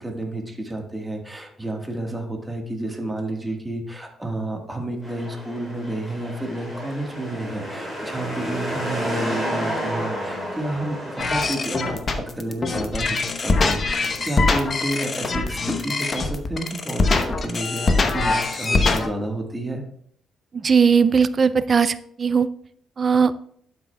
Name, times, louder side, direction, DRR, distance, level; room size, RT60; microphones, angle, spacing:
voice 1, 0.0-19.8, right 1 dB, 10° right, 2 dB, 1.4 m, -30 dB
sound 1, 5.0-11.2, equal, 5° left, 3.4 m, -30 dB
sound 2, 11.2-19.1, left 3 dB, 40° left, 0.8 m, -23 dB
voice 2, 20.6-22.5 23.0-23.3, right 6 dB, 40° right, 15 dB, 0.3 m, -18 dB
11.5 x 6.0 x 2.2 m, 0.65 s
cardioid pair, 90°, 0 cm